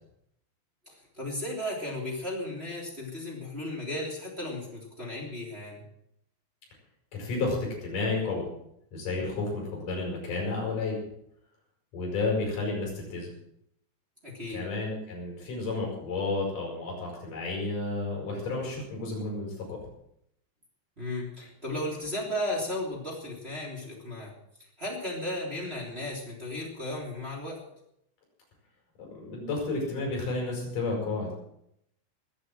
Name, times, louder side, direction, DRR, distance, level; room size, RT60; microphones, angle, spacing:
voice 1, 0.9-5.8 14.2-14.6 21.0-24.3 24.8-27.6, left 1 dB, 15° right, -2 dB, 2.5 m, -35 dB
voice 2, 7.1-8.4 8.9-11.0 11.9-13.3 14.5-19.8 29.0-31.3, left 3 dB, 40° left, -2 dB, 7.9 m, -31 dB
21.0 x 7.4 x 7.7 m, 0.75 s
omnidirectional pair, 5.9 m